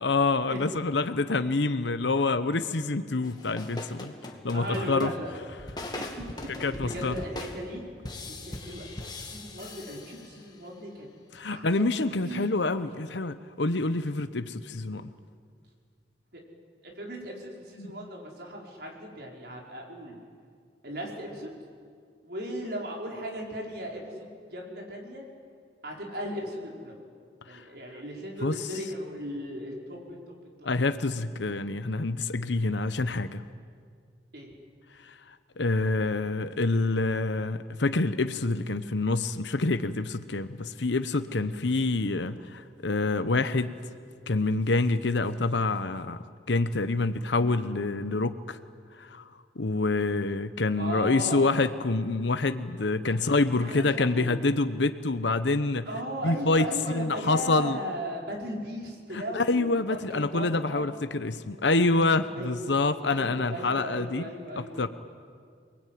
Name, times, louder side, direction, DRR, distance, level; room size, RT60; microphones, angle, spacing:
voice 1, 0.0-4.1 4.4-5.1 6.6-7.1 11.3-15.1 17.8-18.0 27.5-27.6 28.4-28.5 30.6-33.4 35.0-35.1 35.6-43.7 44.3-46.2 46.5-48.6 49.0-49.2 49.6-55.9 56.2-56.7 56.9-57.8 59.1-64.3 64.6-64.9, left 3 dB, 85° left, 11 dB, 1.0 m, -27 dB
sound 1, 3.2-10.7, left 1 dB, 25° left, 2.3 m, -40 dB
voice 2, 4.5-5.3 5.9-6.2 6.5-7.8 8.3-8.8 9.2-11.1 11.5-11.9 12.2-12.5 16.3-16.4 16.8-20.2 20.8-21.5 22.2-25.3 25.8-26.9 27.5-30.9 34.3-34.5 50.8-51.4 53.0-53.1 53.6-54.2 55.9-60.9 62.3-62.6 63.1-64.9, equal, 65° right, -1 dB, 5.3 m, -37 dB
28.5 x 20.5 x 9.4 m, 2.1 s
head